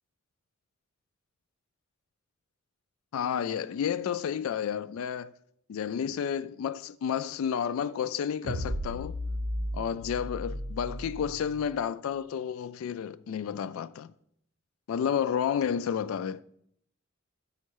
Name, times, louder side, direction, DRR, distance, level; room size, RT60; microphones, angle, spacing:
voice 1, 3.1-5.3 5.7-9.1 9.7-14.1 14.9-16.4, left 8 dB, 85° left, 0.3 m, -31 dB
sound 1, 8.4-11.9, equal, 80° right, 0.9 m, -35 dB
7.2 x 5.6 x 4.6 m
head